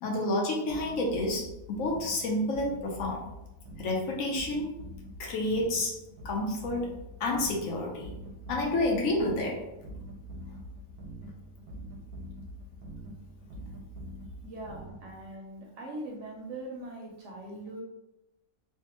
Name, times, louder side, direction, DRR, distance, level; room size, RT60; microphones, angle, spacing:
voice 1, 0.0-3.2 3.8-4.7 5.2-5.9 6.2-6.9 7.2-8.1 8.5-9.6, left 1 dB, 70° left, -1 dB, 1.0 m, -29 dB
sound 1, 0.7-15.3, right 1 dB, 85° right, 1.1 m, -45 dB
voice 2, 14.4-17.8, right 1 dB, 65° right, -1 dB, 0.9 m, -41 dB
3.2 x 2.0 x 2.9 m, 0.92 s
omnidirectional pair, 1.5 m